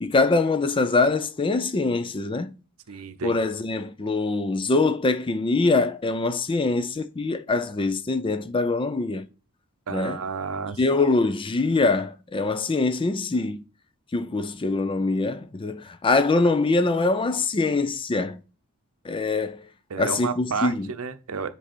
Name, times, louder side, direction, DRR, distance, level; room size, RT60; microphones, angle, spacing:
voice 1, 0.0-2.5 3.2-9.3 9.9-10.2 10.8-13.6 14.1-18.4 19.0-19.6 20.0-20.9, left 3 dB, 25° left, 0.4 m, -23 dB
voice 2, 2.9-3.4 9.9-10.8 19.9-21.5, right 5 dB, 70° right, 0.7 m, -31 dB
7.6 x 3.4 x 4.3 m
head